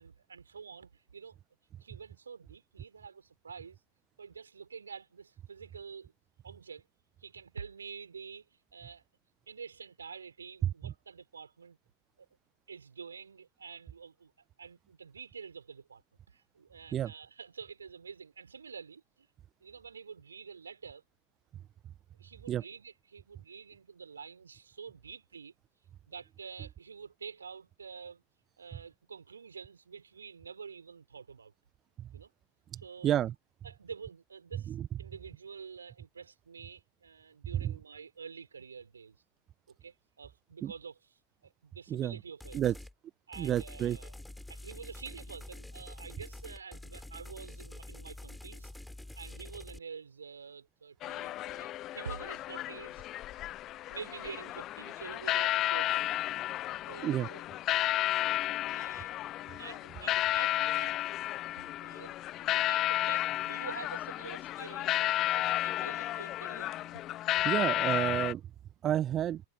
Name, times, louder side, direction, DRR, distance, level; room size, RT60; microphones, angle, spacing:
voice 1, 0.0-1.4 1.8-3.8 4.2-6.1 6.4-6.9 7.2-9.0 9.5-11.8 12.2-12.3 12.7-14.3 14.6-16.0 16.3-19.3 19.6-21.0 22.2-25.5 26.1-28.2 28.6-31.5 32.1-32.3 32.8-33.1 33.6-39.2 39.8-41.0 41.4-42.7 43.3-44.2 44.5-48.7 49.1-53.0 53.9-56.2 56.9-57.4 58.1-58.3 58.7-61.0 61.6-62.1 62.7-67.0, right 6 dB, 75° right, 6.0 m, -48 dB
voice 2, 33.0-33.3 34.7-34.9 37.6-37.7 40.6-40.7 41.9-42.2 42.5-42.7 43.4-44.0 57.0-57.3 59.4-59.6 67.4-68.4 68.8-69.4, right 11 dB, 30° right, 1.0 m, -30 dB
sound 1, 42.4-42.9 43.3-49.8, left 1 dB, 5° left, 4.9 m, -47 dB
sound 2, 51.0-68.3, left 14 dB, 35° left, 0.7 m, -32 dB
figure-of-eight pair, 90°, 0 cm